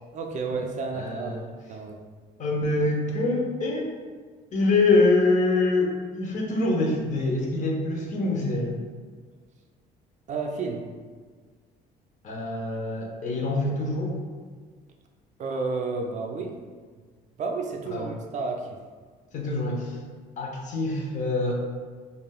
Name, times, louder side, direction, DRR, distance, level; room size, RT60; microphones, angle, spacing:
voice 1, 0.1-2.0 10.3-10.9 15.4-16.6 17.4-18.8, right 4 dB, 45° right, 2 dB, 0.4 m, -31 dB
voice 2, 0.9-1.4 2.4-3.9 4.5-8.7 12.2-14.2 17.9-18.1 19.3-20.0 20.4-21.5, left 2 dB, 45° left, -1 dB, 0.7 m, -25 dB
3.3 x 2.5 x 2.3 m, 1.5 s
cardioid pair, 110°, 17 cm